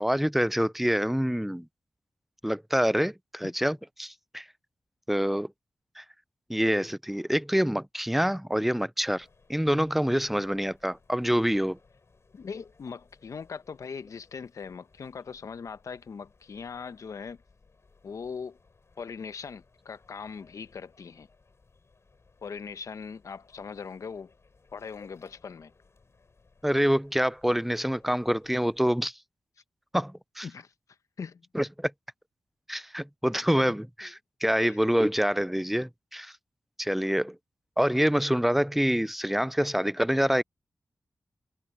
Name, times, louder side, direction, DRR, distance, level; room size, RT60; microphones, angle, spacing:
voice 1, 0.0-1.7 2.4-4.4 5.1-5.5 6.0-6.1 6.5-11.8 26.6-29.1 29.9-30.5 31.5-31.9 32.7-36.3 36.8-37.4 37.8-40.4, equal, 5° right, 0.4 m, -26 dB
sound 1, 9.0-28.9, left 4 dB, 55° left, 8.0 m, -62 dB
voice 2, 12.3-17.4 18.0-18.6 19.0-21.3 22.4-24.3 24.7-25.7 30.4-30.7 31.2-31.5 34.0-34.1 34.6-34.8, left 5 dB, 75° left, 1.0 m, -40 dB
cardioid pair, 50°, 6 cm